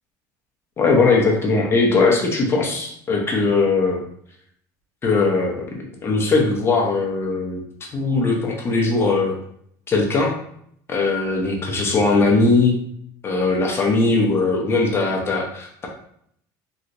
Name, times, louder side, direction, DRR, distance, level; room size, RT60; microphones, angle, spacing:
voice 1, 0.8-4.0 5.0-5.6 6.0-7.6 7.9-9.3 9.9-10.4 10.9-12.8 13.2-15.9, left 3 dB, 25° left, 0 dB, 0.8 m, -19 dB
3.1 x 2.9 x 2.6 m, 0.68 s
cardioid pair, 125°, 9 cm